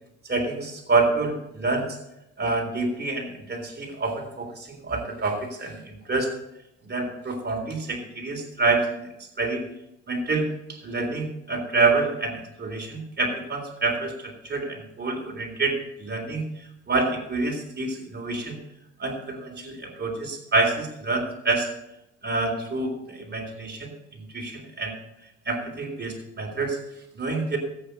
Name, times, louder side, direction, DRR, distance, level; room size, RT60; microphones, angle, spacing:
voice 1, 0.3-1.9 2.4-6.3 6.8-9.1 9.4-9.6 10.1-16.5 16.9-18.6 19.0-21.7 22.2-25.0 25.5-26.8 27.1-27.6, right 3 dB, 35° right, 3 dB, 3.7 m, -27 dB
13.5 x 8.7 x 5.3 m, 0.85 s
cardioid pair, 90°, 30 cm